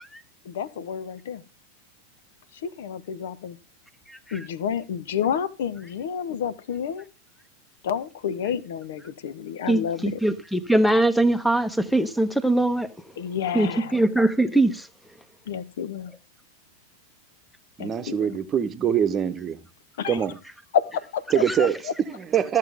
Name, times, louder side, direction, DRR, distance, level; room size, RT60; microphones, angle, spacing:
voice 1, 0.4-1.4 2.8-3.6 4.3-7.0 7.8-10.2 13.2-14.0 15.5-16.1 17.8-18.4 20.0-20.2 20.7-21.4 21.8-21.9, left 8 dB, 55° left, 0.9 m, -29 dB
voice 2, 9.7-12.9 13.5-14.9 21.5-21.7, right 1 dB, ahead, 1.0 m, -22 dB
voice 3, 17.8-19.6 20.1-20.4 21.3-21.8 22.1-22.6, right 8 dB, 25° right, 1.1 m, -24 dB
14.0 x 7.5 x 3.6 m
figure-of-eight pair, 90°, 0 cm